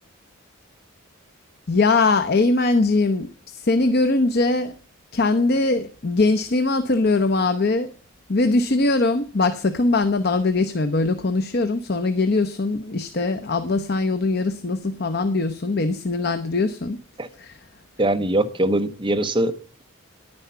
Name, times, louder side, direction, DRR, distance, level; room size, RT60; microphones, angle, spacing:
voice 1, 1.7-4.7 5.1-7.9 8.3-17.0 17.4-17.6, left 3 dB, 50° left, 0.7 m, -21 dB
voice 2, 18.0-19.5, right 1 dB, 20° right, 0.9 m, -21 dB
10.5 x 9.7 x 5.6 m
head